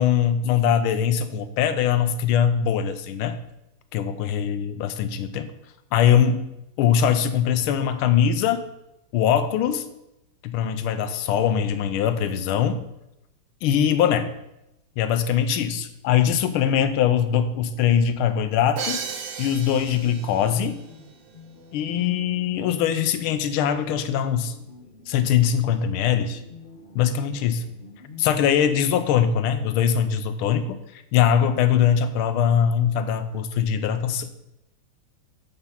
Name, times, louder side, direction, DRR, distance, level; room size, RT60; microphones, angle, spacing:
voice 1, 0.0-3.4 3.9-5.5 5.9-6.5 6.8-8.6 9.1-9.9 10.4-12.8 13.6-14.3 15.0-19.0 19.4-20.8 21.7-24.5 25.1-26.4 26.9-27.6 28.2-34.3, left 8 dB, 80° left, 10 dB, 1.5 m, -22 dB
sound 1, 17.5-30.7, left 1 dB, 60° left, 0.5 m, -48 dB
Crash cymbal, 18.8-20.6, right 6 dB, 85° right, 1.8 m, -33 dB
6.8 x 5.8 x 5.6 m, 0.87 s
omnidirectional pair, 2.4 m